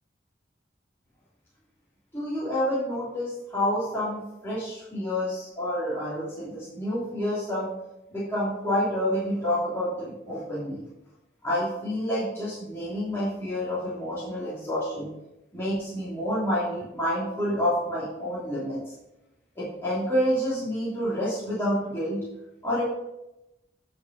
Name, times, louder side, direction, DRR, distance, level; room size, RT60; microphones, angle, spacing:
voice 1, 2.1-7.7 8.1-10.8 11.4-15.1 15.5-18.9 19.5-22.2 22.6-22.8, equal, 15° left, -10 dB, 3.0 m, -28 dB
9.5 x 5.3 x 5.3 m, 0.91 s
head